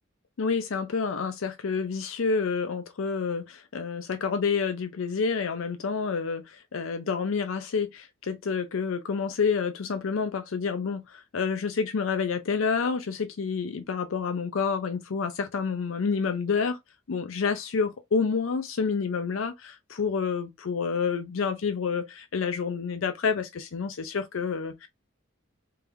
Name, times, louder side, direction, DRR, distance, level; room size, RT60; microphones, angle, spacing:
voice 1, 0.4-16.8 17.1-24.9, left 5 dB, 75° left, 0.5 m, -28 dB
3.4 x 3.3 x 3.1 m
head